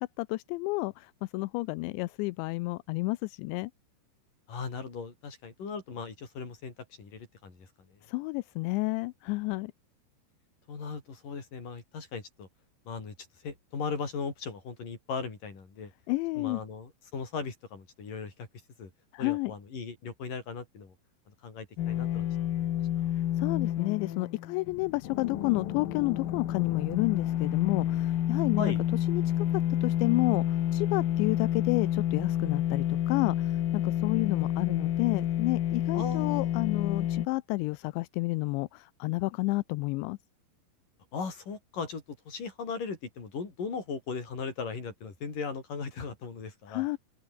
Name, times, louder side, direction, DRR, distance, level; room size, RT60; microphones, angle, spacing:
voice 1, 0.0-3.7 8.0-9.7 16.1-16.6 19.1-19.5 23.1-28.7 29.1-40.2 46.7-47.0, left 23 dB, 85° left, 2.8 m, -30 dB
voice 2, 4.5-8.0 10.7-12.5 12.9-13.2 13.4-15.9 16.4-18.5 18.8-18.9 19.2-20.9 21.3-23.1 28.6-28.8 35.9-36.6 41.1-46.9, left 5 dB, 45° left, 6.9 m, -38 dB
sound 1, 21.8-37.3, left 11 dB, 60° left, 2.8 m, -29 dB
open air
omnidirectional pair, 5.4 m